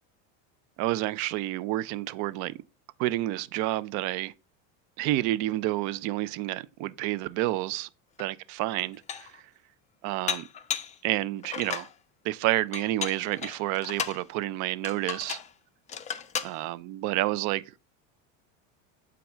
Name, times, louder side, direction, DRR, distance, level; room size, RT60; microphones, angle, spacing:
voice 1, 0.8-2.6 3.0-4.3 5.0-7.9 8.2-9.3 10.0-10.5 11.0-11.9 12.2-15.4 16.4-17.6, right 16 dB, 50° right, 0.5 m, -29 dB
Dishes pots and pans, 8.2-8.3 8.8-9.4 10.3-11.0 11.4-11.9 12.7-14.2 14.8-15.5 15.9-16.6, left 8 dB, 20° left, 0.4 m, -34 dB
7.2 x 4.7 x 3.4 m
supercardioid pair, 125°, 37 cm